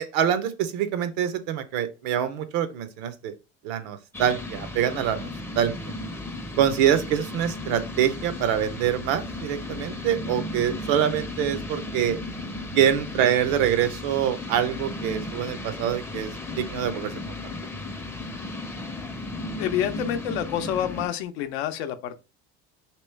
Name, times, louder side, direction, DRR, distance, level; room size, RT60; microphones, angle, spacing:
voice 1, 0.0-3.3 3.6-5.3 5.6-5.7 6.6-12.2 12.7-16.3 16.6-17.4, right 9 dB, 75° right, 0.7 m, -25 dB
sound 1, 4.1-21.1, left 2 dB, 10° left, 0.4 m, -35 dB
voice 2, 19.4-22.2, left 10 dB, 90° left, 0.6 m, -28 dB
3.0 x 3.0 x 3.2 m
supercardioid pair, 95°, 31 cm